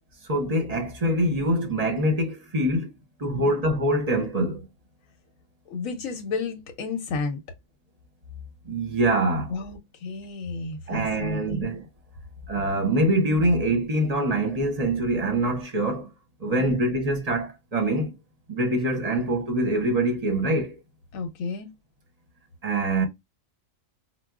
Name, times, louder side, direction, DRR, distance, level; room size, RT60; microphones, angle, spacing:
voice 1, 0.2-2.9 3.2-4.7 8.7-9.5 10.9-11.9 12.5-16.1 16.4-18.1 18.5-20.8 22.6-23.1, right 1 dB, 35° right, 0.7 m, -24 dB
voice 2, 5.7-7.4 9.5-11.7 16.5-16.8 21.1-21.7, left 4 dB, 80° left, 1.0 m, -32 dB
4.5 x 2.1 x 2.3 m
omnidirectional pair, 1.4 m